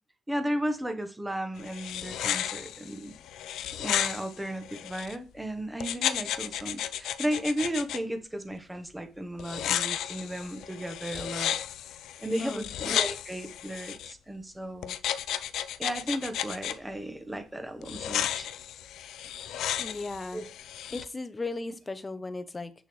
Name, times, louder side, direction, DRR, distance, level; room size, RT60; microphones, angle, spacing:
voice 1, 0.3-3.2 3.8-11.5 12.2-15.0 15.8-18.5 20.3-20.4 20.9-21.0, right 1 dB, 10° right, 1.0 m, -34 dB
sound 1, 1.6-5.2 5.8-8.0 9.4-14.1 14.8-16.8 17.8-21.1, left 11 dB, 85° left, 0.6 m, -33 dB
voice 2, 12.4-12.7 19.8-20.4 20.9-22.7, left 3 dB, 20° left, 0.7 m, -36 dB
7.8 x 6.6 x 3.1 m
cardioid pair, 135°, 0 cm